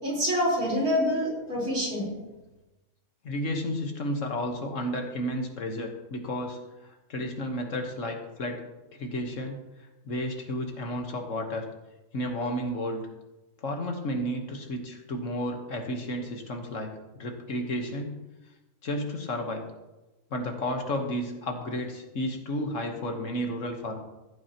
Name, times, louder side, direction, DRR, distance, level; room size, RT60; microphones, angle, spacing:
voice 1, 0.0-2.1, equal, 75° right, -5 dB, 4.8 m, -26 dB
voice 2, 3.2-8.6 8.9-9.6 10.0-11.7 12.1-13.1 13.6-18.2 18.8-19.7 20.3-24.0, left 1 dB, 60° left, 3 dB, 1.6 m, -32 dB
14.5 x 8.6 x 2.9 m, 1.1 s
omnidirectional pair, 1.5 m